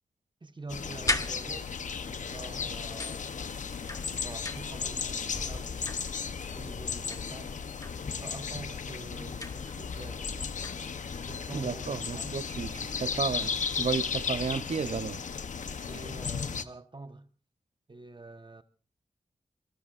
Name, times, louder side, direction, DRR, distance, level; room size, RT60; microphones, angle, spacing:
voice 1, 0.4-1.7 2.1-3.3 4.0-5.8 6.5-7.5 8.0-10.3 11.2-12.4 15.9-17.3 17.9-18.6, right 3 dB, 40° right, 1.2 m, -45 dB
sound 1, 0.7-16.6, left 6 dB, 80° left, 0.9 m, -35 dB
sound 2, 0.9-2.0 3.0-4.9 5.2-6.5 7.1-8.1 9.4-9.9 10.2-11.2 12.8-12.9 13.4-13.5 13.9-14.7, left 2 dB, 25° left, 1.3 m, -38 dB
voice 2, 11.5-15.2, right 6 dB, 65° right, 0.7 m, -33 dB
29.0 x 19.5 x 2.5 m
cardioid pair, 40°, 13 cm